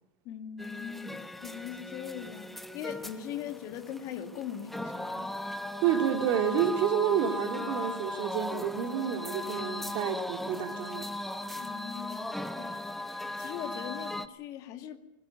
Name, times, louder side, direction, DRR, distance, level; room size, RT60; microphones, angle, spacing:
voice 1, 0.2-5.3 11.6-15.0, left 9 dB, 35° left, 2.2 m, -41 dB
sound 1, 0.6-14.3, left 1 dB, ahead, 1.0 m, -38 dB
voice 2, 5.8-11.1, right 8 dB, 40° right, 3.0 m, -29 dB
21.0 x 20.0 x 9.5 m
supercardioid pair, 165°, 10 cm